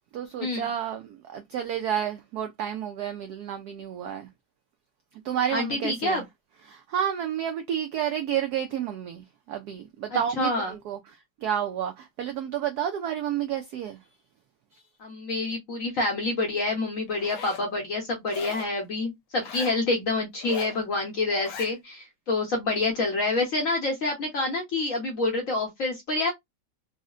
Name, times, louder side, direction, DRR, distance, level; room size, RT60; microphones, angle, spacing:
voice 1, 0.1-4.3 5.2-6.3 6.6-14.0 14.7-14.8, right 9 dB, 80° right, 0.8 m, -30 dB
voice 2, 5.5-6.2 10.4-10.7 15.0-26.3, left 2 dB, 55° left, 1.0 m, -27 dB
Zipper (clothing), 17.1-17.7 18.3-18.8 19.3-19.8 20.3-20.8 21.3-21.7, left 6 dB, 80° left, 1.4 m, -39 dB
3.8 x 2.1 x 2.4 m
omnidirectional pair, 2.2 m